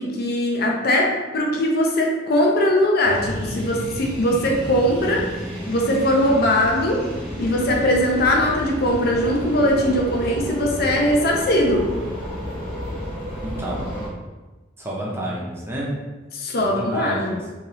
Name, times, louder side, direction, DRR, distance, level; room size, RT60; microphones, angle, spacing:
voice 1, 0.0-5.3 5.7-7.1 7.4-11.9 16.3-17.4, left 1 dB, 55° left, -1 dB, 0.5 m, -20 dB
sound 1, 3.0-14.1, equal, 5° left, 1.1 m, -31 dB
voice 2, 13.4-13.9 14.8-15.9 16.6-17.4, right 1 dB, 15° right, -4 dB, 0.5 m, -29 dB
2.8 x 2.4 x 3.0 m, 1.2 s
head